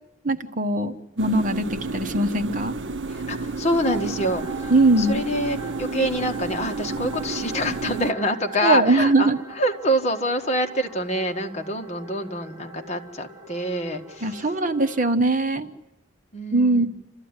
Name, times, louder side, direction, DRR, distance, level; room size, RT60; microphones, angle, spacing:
voice 1, 0.2-2.7 4.7-5.2 8.6-9.4 14.2-15.7 16.5-16.9, right 2 dB, 45° right, 8 dB, 1.2 m, -21 dB
sound 1, 1.2-8.1, right 3 dB, 80° right, 0.8 m, -32 dB
voice 2, 3.1-4.7 5.0-14.4 16.3-16.9, equal, 35° left, 4 dB, 1.6 m, -26 dB
sound 2, 3.8-15.1, right 3 dB, 20° right, 2.5 m, -41 dB
28.5 x 13.5 x 9.7 m, 0.90 s
head